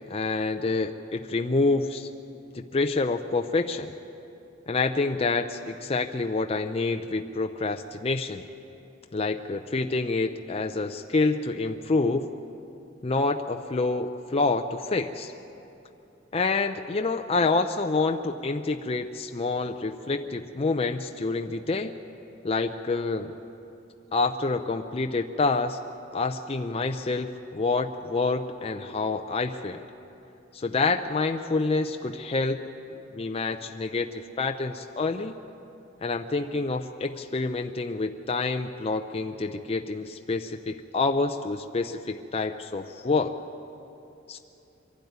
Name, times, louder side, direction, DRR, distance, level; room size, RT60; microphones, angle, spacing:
voice 1, 0.1-2.1 2.5-3.9 4.7-8.4 9.1-12.3 13.0-15.3 16.3-21.9 22.4-23.3 24.1-25.8 26.1-29.8 30.5-32.6 33.1-35.3 36.0-43.4 44.3-44.4, left 3 dB, 30° left, 5 dB, 0.5 m, -27 dB
24.0 x 12.0 x 9.5 m, 2.9 s
head